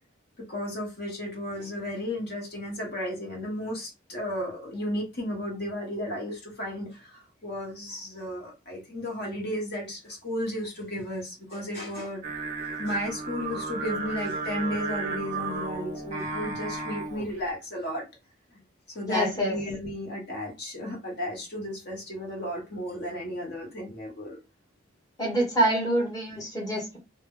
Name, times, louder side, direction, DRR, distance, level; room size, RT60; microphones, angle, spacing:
voice 1, 0.4-12.2 12.8-18.1 18.5-18.6 18.9-24.4, left 1 dB, 50° left, -1 dB, 0.9 m, -34 dB
Singing, 12.2-17.4, right 3 dB, 35° right, 0.5 m, -34 dB
voice 2, 19.1-19.6 25.2-27.0, right 1 dB, 20° left, -2 dB, 0.9 m, -26 dB
2.1 x 2.1 x 3.5 m, 0.26 s
head